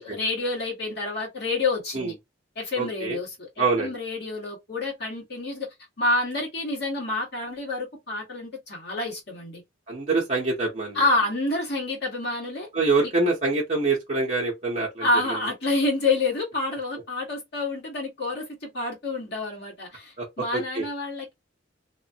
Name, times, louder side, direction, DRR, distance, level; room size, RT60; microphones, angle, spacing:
voice 1, 0.0-2.2 2.5-5.7 6.0-9.6 10.9-12.7 15.0-21.3, left 2 dB, 60° left, 1.6 m, -28 dB
voice 2, 2.8-3.2 3.6-3.9 9.9-11.0 12.7-15.1 20.2-20.3 20.5-20.9, right 3 dB, 35° right, 0.7 m, -25 dB
2.8 x 2.3 x 2.7 m
head